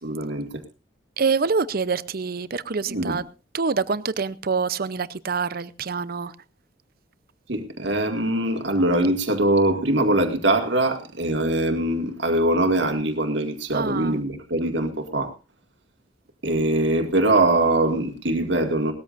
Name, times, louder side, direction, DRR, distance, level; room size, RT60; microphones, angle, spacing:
voice 1, 0.0-0.6 2.9-3.2 7.5-15.3 16.4-18.9, right 1 dB, 65° right, 2.0 m, -22 dB
voice 2, 1.2-3.2 3.5-6.4 13.7-14.2, right 5 dB, 50° right, 0.7 m, -26 dB
19.5 x 13.5 x 2.6 m
head